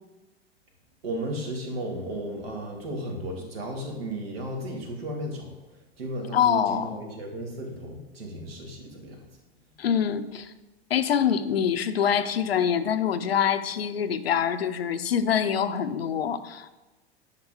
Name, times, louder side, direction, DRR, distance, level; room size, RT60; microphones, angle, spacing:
voice 1, 1.0-9.2, right 1 dB, 65° right, 1 dB, 2.3 m, -34 dB
voice 2, 6.3-7.0 9.8-10.5 10.9-16.8, left 8 dB, 70° left, 11 dB, 0.7 m, -25 dB
9.7 x 6.0 x 4.8 m, 1.1 s
figure-of-eight pair, 90°, 31 cm